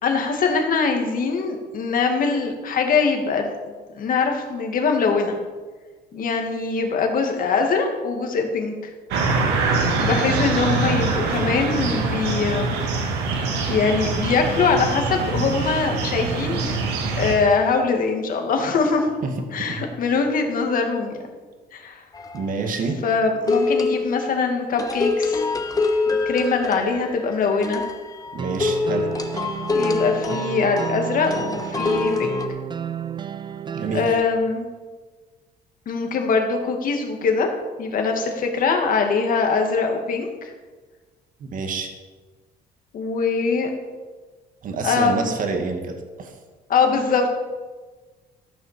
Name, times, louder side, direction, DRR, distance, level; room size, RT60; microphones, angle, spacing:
voice 1, 0.0-3.5 3.9-5.4 6.1-8.9 10.0-12.8 13.7-16.7 17.1-19.1 19.5-21.2 21.7-22.0 23.0-25.4 26.1-27.8 29.7-32.4 33.9-34.7 35.9-37.5 37.8-40.5 42.9-43.7 44.8-45.4 46.7-47.4, left 4 dB, 55° left, 3 dB, 2.1 m, -22 dB
sound 1, 9.1-17.4, right 3 dB, 90° right, 2.1 m, -24 dB
voice 2, 19.2-19.9 22.3-23.0 28.3-29.1 33.7-34.2 41.4-41.9 44.6-46.3, right 4 dB, 55° right, 4 dB, 1.8 m, -28 dB
sound 2, 22.1-22.6 23.5-24.3 24.8-32.5, left 3 dB, 20° left, 1.1 m, -25 dB
sound 3, 28.4-34.1, right 8 dB, 25° right, 0.4 m, -32 dB
14.0 x 6.0 x 6.8 m, 1.3 s
cardioid pair, 110°, 17 cm